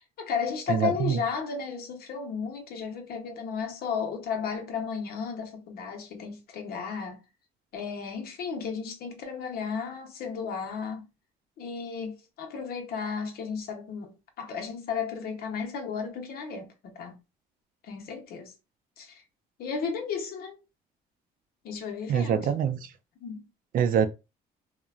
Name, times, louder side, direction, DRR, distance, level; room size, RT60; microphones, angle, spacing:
voice 1, 0.0-7.2 7.7-11.1 11.6-17.2 17.8-18.5 19.0-19.2 19.6-20.6 21.6-22.5 23.2-23.5, left 6 dB, 65° left, 0.8 m, -34 dB
voice 2, 0.7-1.2 22.1-22.9 23.7-24.1, right 8 dB, 55° right, 0.4 m, -24 dB
3.0 x 2.1 x 2.4 m
cardioid pair, 110°, 17 cm